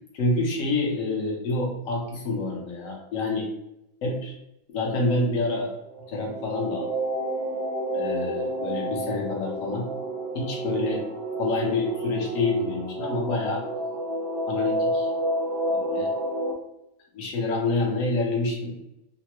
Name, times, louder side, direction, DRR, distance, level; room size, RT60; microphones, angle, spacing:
voice 1, 0.1-3.4 4.0-4.4 4.7-5.7 6.1-6.9 7.9-9.9 10.3-11.0 11.4-13.6 14.5-15.1 15.7-16.1 17.1-18.8, left 2 dB, 60° left, -1 dB, 1.1 m, -27 dB
sound 1, 5.9-16.5, right 1 dB, 70° right, 0.6 m, -30 dB
3.2 x 2.1 x 2.9 m, 0.85 s
omnidirectional pair, 1.7 m